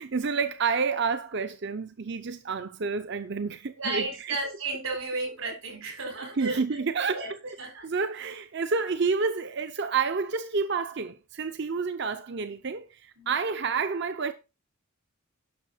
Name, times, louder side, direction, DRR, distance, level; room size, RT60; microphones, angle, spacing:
voice 1, 0.0-4.4 6.4-7.2 7.8-14.3, right 5 dB, 55° right, 0.7 m, -29 dB
voice 2, 3.8-6.8 7.1-7.9 13.2-13.4, right 3 dB, 85° right, 4.2 m, -33 dB
10.5 x 6.4 x 4.5 m
head